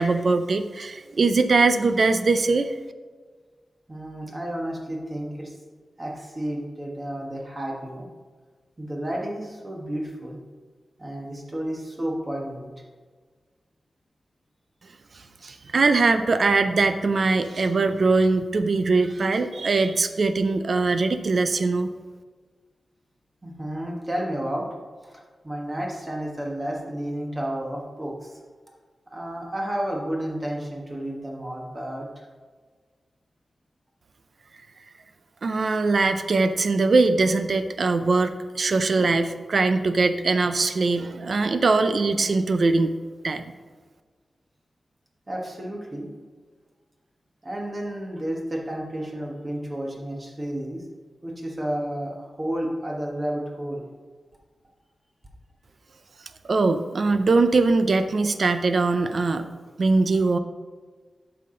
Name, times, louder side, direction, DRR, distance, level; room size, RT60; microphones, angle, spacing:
voice 1, 0.0-2.7 15.4-21.9 35.4-43.0 43.2-43.4 56.5-59.5 59.8-60.4, right 3 dB, 50° right, 9 dB, 0.4 m, -21 dB
voice 2, 3.9-5.5 6.0-8.1 8.8-10.4 11.0-12.7 23.4-24.7 25.0-28.4 29.1-32.1 45.3-46.1 47.4-50.8 51.2-53.8, right 1 dB, 20° right, -1 dB, 1.2 m, -31 dB
9.1 x 5.7 x 3.8 m, 1.5 s
wide cardioid pair, 165°, 0 cm